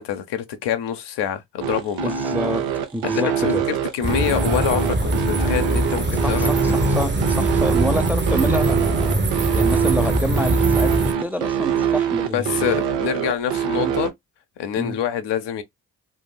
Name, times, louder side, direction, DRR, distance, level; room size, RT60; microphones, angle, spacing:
voice 1, 0.0-2.1 3.1-6.8 12.3-14.1 14.6-15.6, left 9 dB, 75° left, 0.7 m, -26 dB
sound 1, 1.6-14.1, right 8 dB, 90° right, 0.6 m, -24 dB
voice 2, 2.0-2.6 2.9-3.6 6.2-9.1 9.5-12.7 13.7-13.9 14.8-15.0, equal, 5° right, 0.4 m, -27 dB
sound 2, 4.0-11.1, right 1 dB, 25° right, 0.7 m, -22 dB
3.4 x 2.5 x 2.2 m
supercardioid pair, 45°, 42 cm